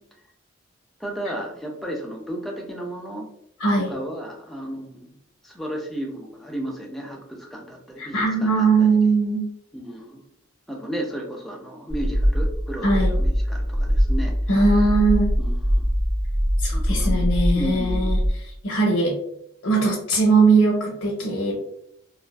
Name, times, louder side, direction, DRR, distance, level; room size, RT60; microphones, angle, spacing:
voice 1, 1.0-3.3 3.8-5.1 5.4-8.9 9.7-10.2 10.7-14.3 15.4-15.9 16.7-17.3 17.5-18.1, right 1 dB, ahead, -1 dB, 0.4 m, -33 dB
voice 2, 3.6-3.9 8.0-9.4 12.8-13.1 14.5-15.3 16.6-19.1 19.6-21.6, right 3 dB, 70° left, -2 dB, 0.6 m, -20 dB
sound 1, 11.9-18.3, equal, 60° right, 0.7 m, -22 dB
2.4 x 2.3 x 2.2 m, 0.74 s
head